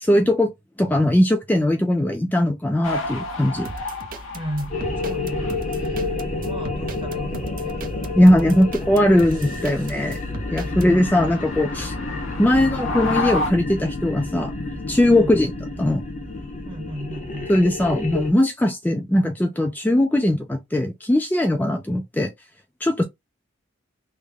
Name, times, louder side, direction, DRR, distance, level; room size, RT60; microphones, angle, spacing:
voice 1, 0.1-0.5 0.8-3.7 8.2-10.2 10.5-11.9 12.4-14.5 14.9-15.5 15.8-16.0 17.5-22.3 22.8-23.0, left 1 dB, 10° left, 0.4 m, -19 dB
sound 1, 2.8-13.5, left 2 dB, 80° left, 0.9 m, -32 dB
sound 2, 3.6-10.9, right 3 dB, 45° right, 0.6 m, -37 dB
voice 2, 4.3-7.8 8.1-8.6 10.7-11.3 15.0-15.4 16.6-17.5, equal, 25° right, 1.0 m, -35 dB
sound 3, 4.7-18.3, left 2 dB, 40° left, 0.8 m, -30 dB
3.4 x 2.1 x 3.4 m
head